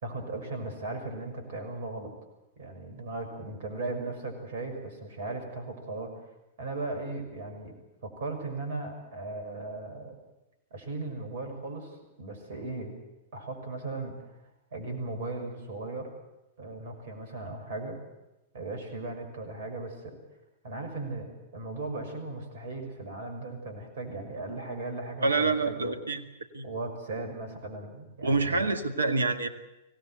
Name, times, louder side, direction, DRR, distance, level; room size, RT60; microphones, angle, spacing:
voice 1, 0.0-2.1 2.6-6.1 6.6-7.7 8.0-10.2 10.7-13.0 13.3-14.3 14.7-16.1 16.6-18.0 18.5-20.2 20.6-25.9 26.6-28.7, right 2 dB, 55° right, 6 dB, 6.4 m, -37 dB
voice 2, 25.2-26.2 26.5-26.7 28.2-29.5, right 3 dB, 75° right, 10 dB, 1.9 m, -26 dB
24.5 x 18.5 x 8.0 m, 0.99 s
figure-of-eight pair, 95°, 0 cm